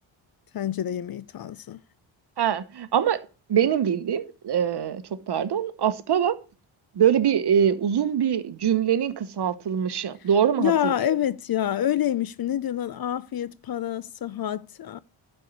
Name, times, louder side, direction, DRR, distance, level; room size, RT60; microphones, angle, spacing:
voice 1, 0.5-1.8 10.6-15.0, left 11 dB, 50° left, 0.6 m, -27 dB
voice 2, 2.4-3.2 3.5-6.4 6.9-10.9, right 9 dB, 55° right, 1.1 m, -23 dB
11.5 x 4.5 x 8.1 m
cardioid pair, 80°, 49 cm